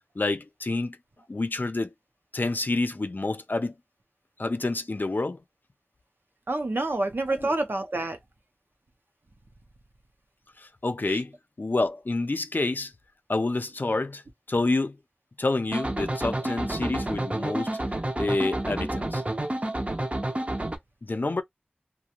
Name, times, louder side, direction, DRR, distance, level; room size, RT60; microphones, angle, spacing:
voice 1, 0.2-1.0 1.3-1.9 2.3-3.7 4.4-5.4 7.3-7.5 10.6-12.9 13.3-14.2 14.5-15.0 15.4-17.8 18.2-19.2 21.0-21.4, left 2 dB, 65° left, 0.4 m, -28 dB
voice 2, 6.5-8.2 11.1-11.2, right 2 dB, 90° right, 0.6 m, -28 dB
sound 1, 15.7-20.8, right 1 dB, 40° right, 0.6 m, -29 dB
2.4 x 2.2 x 2.9 m
wide cardioid pair, 40°, 4 cm